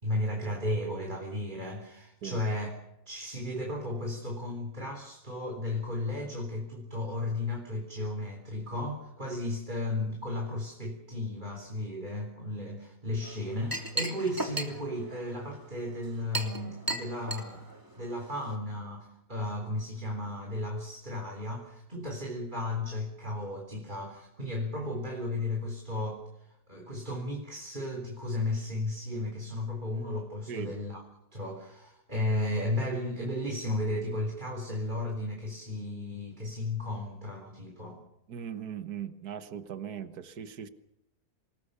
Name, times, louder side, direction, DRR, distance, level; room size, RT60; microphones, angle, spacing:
voice 1, 0.0-2.7 3.1-17.7 17.9-31.0 31.3-38.0, left 1 dB, 30° right, 1 dB, 3.9 m, -34 dB
Chink clink, 13.2-18.6, right 1 dB, 10° right, 3.0 m, -37 dB
voice 2, 38.3-40.7, right 8 dB, 75° right, 11 dB, 1.8 m, -39 dB
27.5 x 19.5 x 6.9 m, 0.84 s
omnidirectional pair, 1.7 m